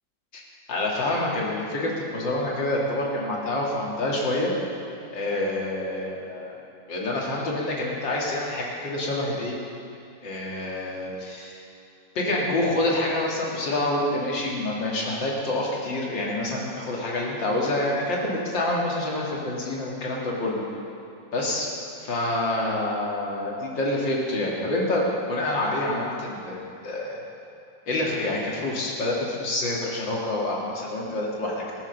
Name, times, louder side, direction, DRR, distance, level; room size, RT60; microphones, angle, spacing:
voice 1, 0.7-4.5 5.1-6.6 6.9-9.6 10.2-11.6 12.2-20.6 21.3-21.7 22.0-27.2 27.9-31.6, left 1 dB, 70° left, -3 dB, 2.7 m, -27 dB
18.0 x 7.5 x 6.5 m, 2.7 s
omnidirectional pair, 2.1 m